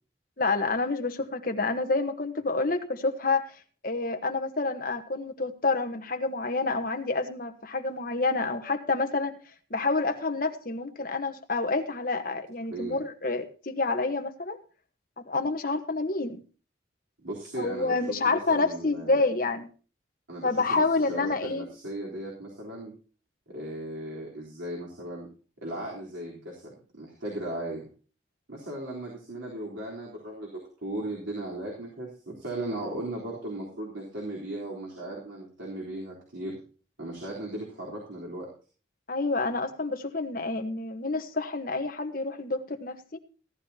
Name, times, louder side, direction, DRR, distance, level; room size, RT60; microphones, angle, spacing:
voice 1, 0.4-3.5 3.8-9.4 9.7-14.6 15.2-16.4 17.6-19.7 20.4-21.7 39.1-43.2, left 3 dB, 45° left, 7 dB, 1.2 m, -28 dB
voice 2, 17.2-18.0 18.2-19.2 20.3-22.9 23.5-25.3 25.6-27.9 28.5-36.6 37.0-38.5, right 1 dB, 90° right, -4 dB, 3.7 m, -37 dB
17.0 x 12.0 x 2.9 m, 0.37 s
head